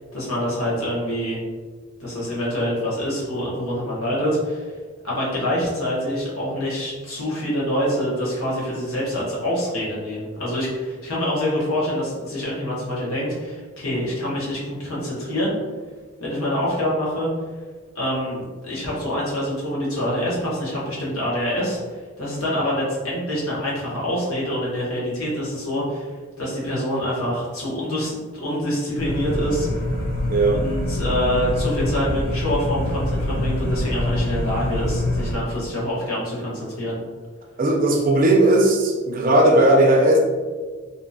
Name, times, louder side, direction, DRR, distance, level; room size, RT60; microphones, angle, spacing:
voice 1, 0.1-1.4 2.0-4.7 5.0-15.5 16.2-17.3 17.9-21.8 22.2-29.7 30.5-37.0, equal, 85° left, -6 dB, 1.0 m, -25 dB
sound 1, 29.0-35.3, left 1 dB, 40° left, 0.4 m, -25 dB
voice 2, 30.3-30.6 37.6-40.2, right 1 dB, 40° right, 0 dB, 0.4 m, -16 dB
2.7 x 2.6 x 2.2 m, 1.4 s
head